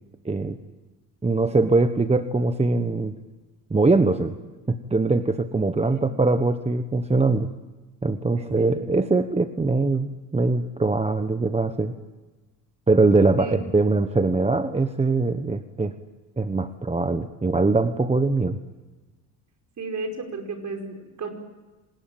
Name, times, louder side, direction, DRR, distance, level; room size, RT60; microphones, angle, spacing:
voice 1, 0.2-0.6 1.2-3.2 3.7-4.4 4.7-7.5 8.0-11.9 12.9-15.9 16.4-18.6, right 3 dB, 15° right, 10 dB, 1.2 m, -22 dB
voice 2, 8.4-8.7 13.4-13.6 19.8-21.3, right 3 dB, 45° right, 5 dB, 5.4 m, -33 dB
26.5 x 20.0 x 9.1 m, 1.2 s
supercardioid pair, 90°, 41 cm